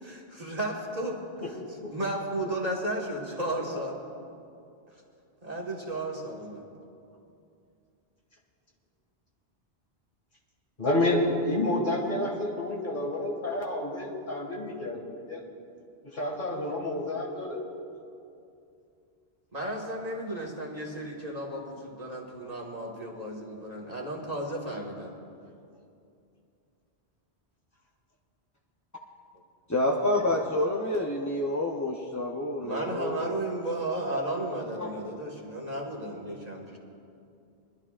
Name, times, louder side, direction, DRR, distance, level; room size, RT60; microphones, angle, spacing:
voice 1, 0.0-1.2 1.5-1.6 1.9-4.0 5.4-6.6 19.5-25.1 32.6-36.8, right 1 dB, 35° right, -2 dB, 1.7 m, -34 dB
voice 2, 10.8-15.4 16.0-17.7, left 1 dB, 50° left, -2 dB, 2.1 m, -29 dB
voice 3, 29.7-33.3 34.8-34.9, left 1 dB, 20° left, -1 dB, 0.6 m, -28 dB
23.5 x 12.0 x 2.5 m, 2.6 s
omnidirectional pair, 1.1 m